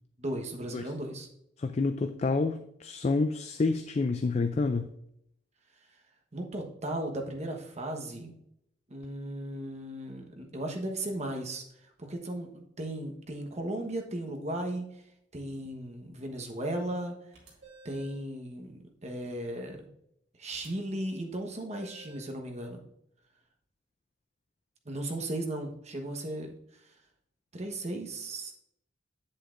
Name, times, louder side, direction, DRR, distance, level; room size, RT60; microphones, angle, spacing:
voice 1, 0.2-1.3 6.3-8.3 8.9-11.6 12.0-14.9 15.3-17.1 17.8-19.8 20.4-22.8 24.8-26.5 27.5-28.5, right 1 dB, 40° right, 3 dB, 1.2 m, -36 dB
voice 2, 1.6-4.9, left 3 dB, 35° left, 8 dB, 0.4 m, -28 dB
sound 1, 17.3-18.2 20.5-20.7 21.7-22.3, right 1 dB, 85° right, 2.3 m, -52 dB
8.4 x 7.7 x 2.6 m, 0.73 s
head